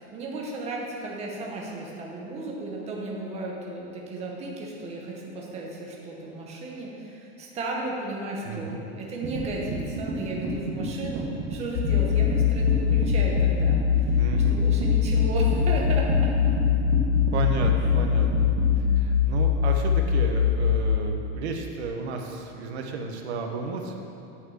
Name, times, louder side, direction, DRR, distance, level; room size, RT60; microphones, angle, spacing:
voice 1, 0.0-16.5 18.5-19.0, right 2 dB, 20° right, -2 dB, 1.1 m, -34 dB
voice 2, 8.4-8.8 14.1-14.6 17.3-18.5 19.0-24.0, right 4 dB, 85° right, 2 dB, 1.2 m, -32 dB
sound 1, 9.2-18.7, right 2 dB, 55° right, 1.5 m, -31 dB
sound 2, 11.7-21.0, left 8 dB, 70° left, 0.7 m, -22 dB
8.8 x 5.8 x 6.4 m, 2.7 s
supercardioid pair, 165°, 32 cm